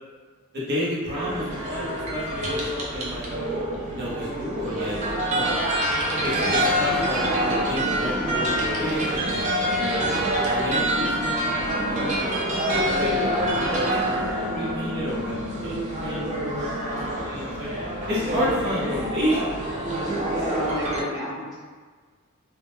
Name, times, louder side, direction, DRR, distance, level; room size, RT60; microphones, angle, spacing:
voice 1, 0.5-3.3 3.9-5.6 6.2-9.3 9.8-17.7 18.1-19.5 19.8-20.2, left 1 dB, 50° right, -7 dB, 0.7 m, -31 dB
sound 1, 1.0-21.0, right 1 dB, 30° right, 0.3 m, -26 dB
voice 2, 20.3-21.5, equal, 15° left, -9 dB, 0.6 m, -30 dB
2.1 x 2.1 x 3.0 m, 1.5 s
head